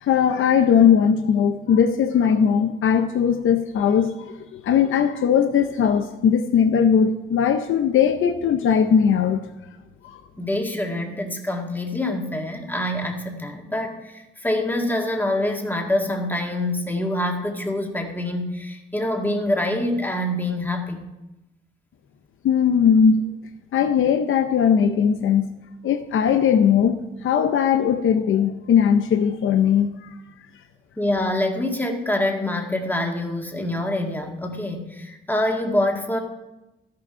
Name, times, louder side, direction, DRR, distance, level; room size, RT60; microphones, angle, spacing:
voice 1, 0.0-9.5 10.0-10.2 22.4-23.2 23.7-25.5 25.8-30.1, left 7 dB, 75° left, 8 dB, 0.7 m, -19 dB
voice 2, 10.4-21.1 31.0-36.2, left 1 dB, 10° left, 2 dB, 1.9 m, -25 dB
12.5 x 6.6 x 5.5 m, 0.98 s
cardioid pair, 75°, 21 cm